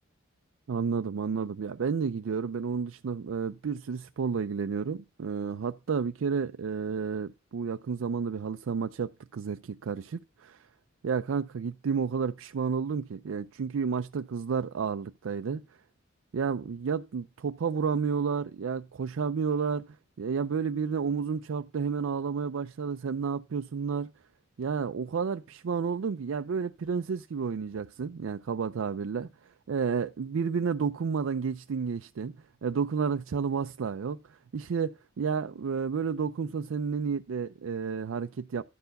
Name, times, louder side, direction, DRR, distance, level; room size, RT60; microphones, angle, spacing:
voice 1, 0.7-10.7 11.0-15.6 16.3-24.1 24.6-32.4 32.6-38.6, right 6 dB, 75° right, 0.4 m, -31 dB
11.5 x 4.6 x 6.5 m
head